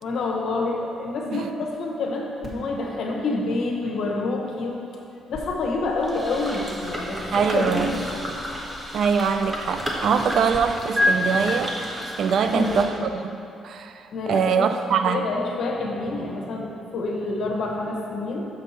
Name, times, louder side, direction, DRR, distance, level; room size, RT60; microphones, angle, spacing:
voice 1, 0.0-4.8 5.3-8.3 12.5-12.9 14.1-14.7 15.1-18.4, left 3 dB, 70° left, -1 dB, 1.0 m, -28 dB
sound 1, 2.4-10.6 11.0-11.1, left 2 dB, 5° right, 1.6 m, -33 dB
sound 2, 6.0-12.8, equal, 25° right, 1.1 m, -33 dB
voice 2, 7.3-7.9 8.9-11.8 12.2-13.4 13.6-15.2, right 6 dB, 65° right, 8 dB, 0.4 m, -23 dB
7.1 x 5.4 x 4.3 m, 2.7 s
cardioid pair, 90°, 0 cm